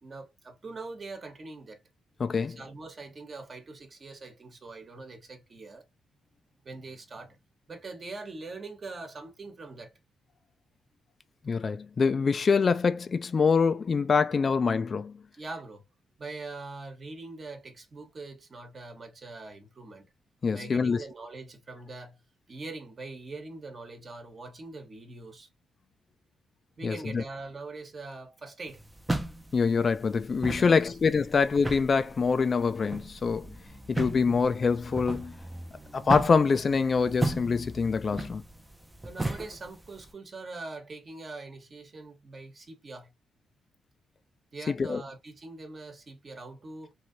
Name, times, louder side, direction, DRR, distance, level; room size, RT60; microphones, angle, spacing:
voice 1, 0.0-1.8 2.4-5.8 6.6-7.4 7.7-9.9 15.3-15.8 16.2-20.1 20.5-22.2 22.5-25.5 26.8-28.8 30.6-31.0 39.0-43.1 44.5-46.9, right 3 dB, 45° right, 1.1 m, -43 dB
voice 2, 2.2-2.6 11.5-15.1 20.4-21.0 26.8-27.2 29.5-33.5 33.9-35.3 35.9-38.4 44.7-45.0, left 5 dB, 45° left, 0.3 m, -25 dB
sound 1, 28.7-40.1, right 2 dB, 15° right, 0.6 m, -36 dB
3.1 x 2.7 x 2.6 m
cardioid pair, 75°, 0 cm